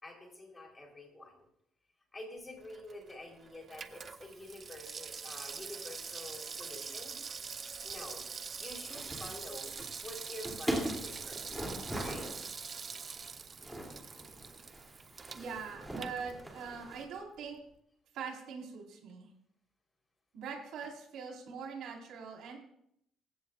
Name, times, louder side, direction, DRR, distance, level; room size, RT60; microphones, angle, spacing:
voice 1, 0.0-1.5 2.1-7.3 7.8-8.2 8.6-9.7 10.0-12.3, left 1 dB, 15° left, 0 dB, 3.7 m, -48 dB
Water tap faucet / Sink (filling or washing), 2.6-16.9 17.2-17.3, right 5 dB, 30° right, 0.6 m, -44 dB
sound 1, 8.8-17.0, right 1 dB, 5° right, 2.8 m, -41 dB
voice 2, 15.3-17.6 18.1-19.3 20.3-22.6, right 5 dB, 80° right, 0 dB, 4.1 m, -42 dB
24.5 x 15.5 x 2.4 m, 0.74 s
cardioid pair, 175°, 0 cm